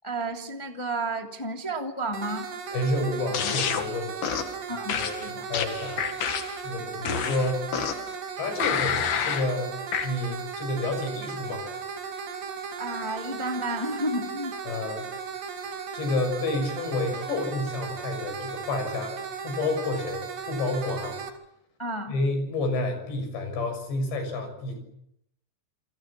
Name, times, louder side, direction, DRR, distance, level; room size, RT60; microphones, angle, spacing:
voice 1, 0.0-2.5 4.7-5.5 12.8-14.5 21.8-22.1, right 1 dB, 10° left, 3 dB, 1.3 m, -31 dB
sound 1, 2.1-21.3, right 6 dB, 80° right, 5.6 m, -36 dB
voice 2, 2.7-4.3 5.0-6.0 6.6-7.7 8.4-9.8 10.0-11.8 14.7-15.1 15.9-21.2 22.1-24.8, left 2 dB, 90° left, 7 dB, 9.0 m, -30 dB
sound 2, 3.3-3.9 4.2-4.5 4.9-6.6 7.1-8.1 8.6-9.5 9.9-10.1, left 8 dB, 65° left, 3.7 m, -28 dB
29.5 x 22.5 x 7.4 m, 0.77 s
omnidirectional pair, 4.9 m